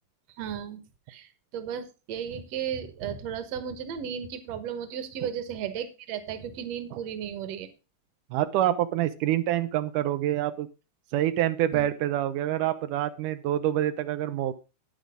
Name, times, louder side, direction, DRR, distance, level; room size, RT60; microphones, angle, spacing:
voice 1, 0.4-0.8 1.1-7.7 11.7-11.9, right 8 dB, 60° right, 11 dB, 2.2 m, -35 dB
voice 2, 8.3-10.7 11.1-14.5, right 12 dB, 85° right, 10 dB, 2.3 m, -26 dB
10.5 x 9.3 x 3.6 m, 0.30 s
omnidirectional pair, 3.6 m